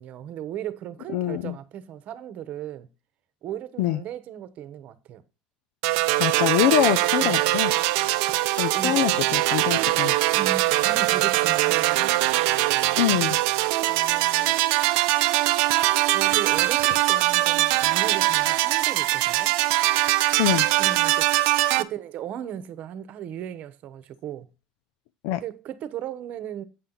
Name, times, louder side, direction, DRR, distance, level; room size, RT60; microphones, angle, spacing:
voice 1, 0.0-2.9 3.4-5.2 7.2-7.4 8.7-9.0 10.3-12.1 13.9-14.6 16.1-19.6 20.8-21.3 21.8-24.5 25.3-26.6, right 10 dB, 55° right, 1.0 m, -36 dB
voice 2, 1.1-1.6 3.8-4.0 6.2-7.7 8.5-10.2 13.0-13.4 20.4-20.7 25.2-25.4, left 13 dB, 85° left, 0.4 m, -24 dB
sound 1, 5.8-21.8, right 17 dB, 85° right, 0.5 m, -22 dB
8.5 x 5.7 x 3.9 m
cardioid pair, 120°, 3 cm